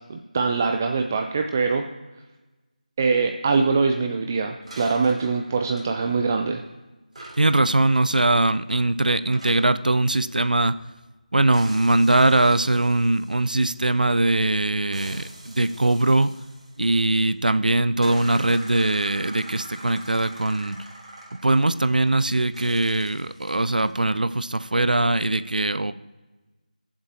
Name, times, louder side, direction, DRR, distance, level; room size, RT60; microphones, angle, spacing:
voice 1, 0.1-1.8 3.0-6.6, right 4 dB, 20° right, 5 dB, 0.4 m, -23 dB
sound 1, 4.7-6.7 7.1-11.1 11.5-14.3 14.9-17.4 18.0-22.2 22.5-24.0, right 1 dB, 50° right, 3.1 m, -44 dB
voice 2, 7.4-10.8 11.3-16.3 16.8-20.9 21.4-25.9, right 2 dB, 80° right, 13 dB, 0.5 m, -21 dB
21.0 x 7.4 x 2.8 m, 1.2 s
figure-of-eight pair, 165°, 4 cm